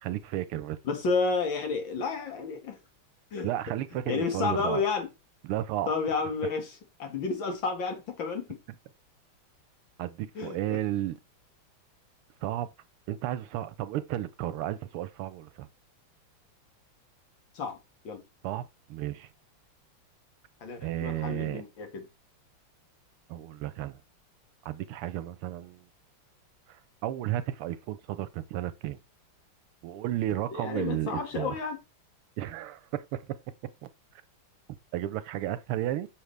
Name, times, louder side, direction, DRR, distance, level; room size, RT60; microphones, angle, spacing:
voice 1, 0.0-0.8 3.4-4.8 5.4-5.9 10.0-11.2 12.4-12.7 13.1-15.7 18.4-18.6 18.9-19.3 20.8-21.6 23.3-24.0 24.6-25.8 27.0-29.0 29.8-31.5 32.4-33.2 33.8-33.9 34.9-36.1, right 13 dB, 85° right, 1.6 m, -33 dB
voice 2, 0.8-2.8 3.3-3.5 3.9-5.1 5.9-8.5 10.4-10.8 17.5-17.8 18.0-18.2 20.6-22.1 30.5-31.8, left 4 dB, 60° left, 2.5 m, -31 dB
7.3 x 6.3 x 3.3 m
omnidirectional pair, 2.4 m